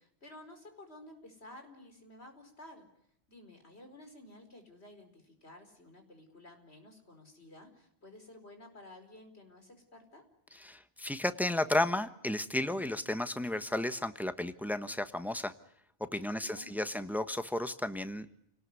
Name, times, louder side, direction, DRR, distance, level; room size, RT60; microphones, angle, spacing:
voice 1, 0.0-2.9 3.3-10.2 16.1-16.9, left 1 dB, 90° left, 6 dB, 5.1 m, -53 dB
voice 2, 10.6-15.5 16.1-18.4, left 1 dB, ahead, 11 dB, 1.1 m, -33 dB
29.0 x 19.0 x 9.6 m, 0.75 s
omnidirectional pair, 1.1 m